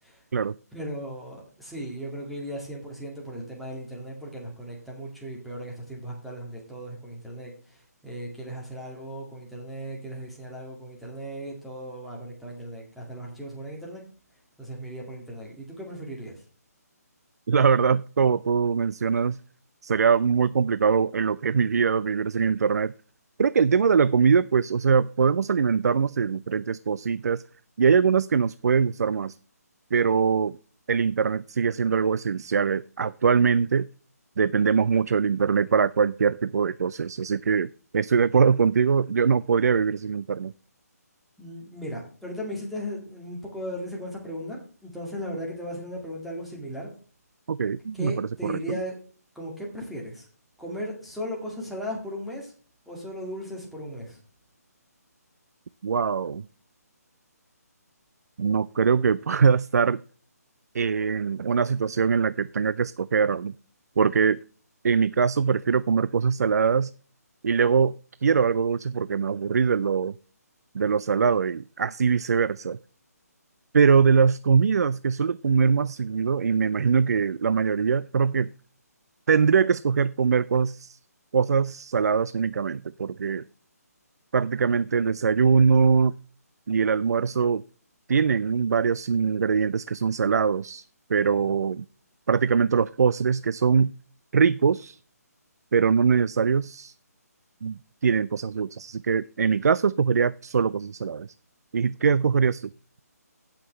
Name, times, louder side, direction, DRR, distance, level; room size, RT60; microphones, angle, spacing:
voice 1, 0.7-14.0 14.6-16.4 41.4-46.9 47.9-48.9 49.4-50.3 50.6-52.5 52.9-54.2 91.2-91.5, equal, ahead, -4 dB, 2.0 m, -37 dB
voice 2, 17.5-19.4 19.8-22.9 23.4-27.4 27.8-29.4 29.9-30.6 30.9-33.9 34.4-40.5 47.5-48.8 55.8-56.4 58.4-60.0 60.7-63.5 64.0-64.4 64.8-66.9 67.4-67.9 68.2-70.2 70.7-72.8 73.7-78.5 79.3-81.0 81.3-83.4 84.3-86.1 86.7-87.6 88.1-90.8 91.1-91.8 92.3-93.9 94.3-95.0 95.7-96.9 97.6-101.3 101.7-102.7, right 6 dB, 70° right, 17 dB, 0.4 m, -22 dB
16.5 x 5.9 x 3.1 m, 0.40 s
hypercardioid pair, 160°, 9 cm